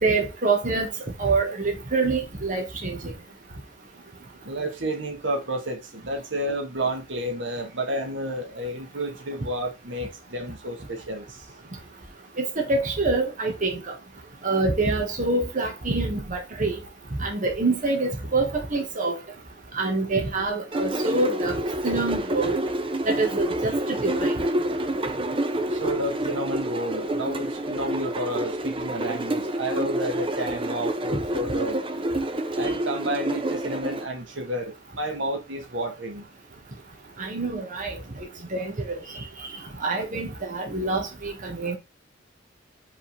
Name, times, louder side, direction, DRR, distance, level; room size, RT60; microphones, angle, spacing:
voice 1, 0.0-0.9 1.2-3.0 12.4-13.8 14.4-16.8 17.2-19.2 19.7-21.5 21.8-22.6 23.1-23.7 24.0-24.3 37.2-38.0 38.5-38.9 39.8-41.8, right 3 dB, 45° right, 1.6 m, -25 dB
voice 2, 4.4-11.5 25.7-31.8 32.5-36.2, right 1 dB, 70° right, 1.6 m, -31 dB
sound 1, 20.7-34.0, right 1 dB, 30° right, 0.8 m, -28 dB
5.3 x 4.0 x 5.3 m
head